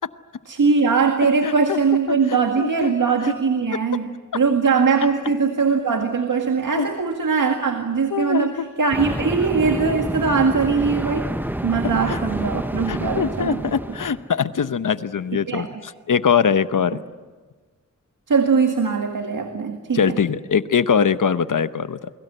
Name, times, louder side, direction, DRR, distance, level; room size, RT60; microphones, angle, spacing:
voice 1, 0.5-11.4 11.6-13.7 15.5-15.7 18.3-20.2, right 5 dB, 90° right, 4 dB, 1.9 m, -21 dB
voice 2, 1.4-1.8 2.1-2.2 2.6-2.9 3.2-3.3 6.8-6.9 8.1-8.7 12.1-12.2 12.9-17.0 19.9-22.1, left 7 dB, 85° left, 12 dB, 0.9 m, -22 dB
sound 1, 8.9-14.3, right 1 dB, 5° right, 0.9 m, -28 dB
29.0 x 22.0 x 8.0 m, 1.4 s
wide cardioid pair, 95°, 31 cm